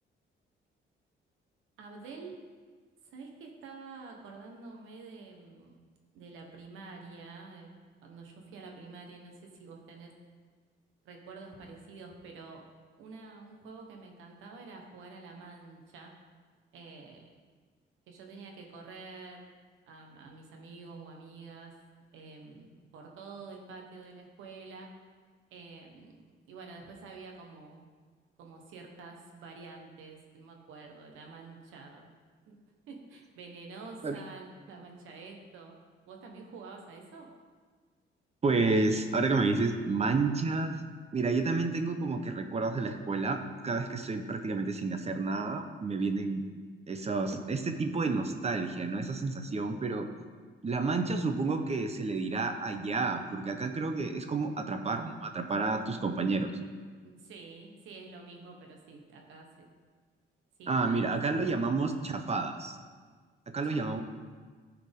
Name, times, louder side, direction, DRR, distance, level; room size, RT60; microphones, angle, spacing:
voice 1, 1.8-2.4 3.0-5.8 6.1-7.7 8.0-10.1 11.0-12.6 13.0-16.1 16.7-17.2 18.1-19.5 19.9-21.7 22.1-24.9 25.5-27.8 28.4-32.0 32.5-32.6 32.9-35.8 36.1-37.3 57.0-59.7 60.6-61.0 61.4-61.5 63.6-64.0, right 4 dB, 90° right, 1 dB, 1.3 m, -48 dB
voice 2, 38.4-40.8 41.1-46.4 46.9-50.1 50.6-56.5 60.7-62.8 63.5-64.0, right 3 dB, 30° right, 6 dB, 0.8 m, -30 dB
14.0 x 4.9 x 3.7 m, 1.5 s
cardioid pair, 90°, 20 cm